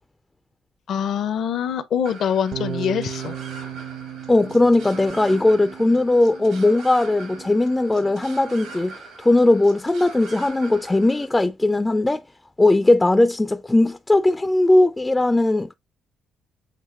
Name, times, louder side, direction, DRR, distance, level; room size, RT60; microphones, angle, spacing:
voice 1, 0.9-3.3, left 8 dB, 65° left, 0.5 m, -24 dB
sound 1, 2.1-11.3, right 3 dB, 80° right, 2.2 m, -42 dB
sound 2, 2.5-8.8, right 9 dB, 60° right, 0.6 m, -37 dB
voice 2, 4.3-12.2 12.6-15.7, left 2 dB, 15° left, 0.3 m, -18 dB
7.5 x 2.9 x 2.3 m
supercardioid pair, 70°, 0 cm